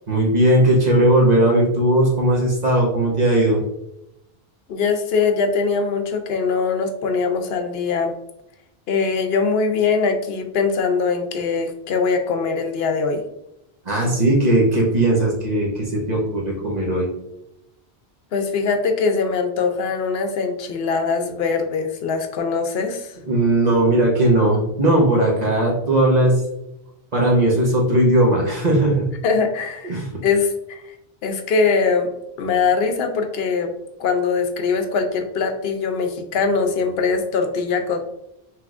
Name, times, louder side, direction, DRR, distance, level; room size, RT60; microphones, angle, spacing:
voice 1, 0.1-3.6 13.8-17.1 23.3-26.4 27.1-29.1 29.8-30.1, right 1 dB, 45° right, -3 dB, 1.0 m, -18 dB
voice 2, 4.7-8.2 8.9-13.2 18.3-23.2 29.2-30.9 31.2-32.1 32.4-33.7 34.0-38.0, left 5 dB, 75° left, 5 dB, 0.9 m, -22 dB
5.9 x 3.0 x 2.4 m, 0.84 s
omnidirectional pair, 1.0 m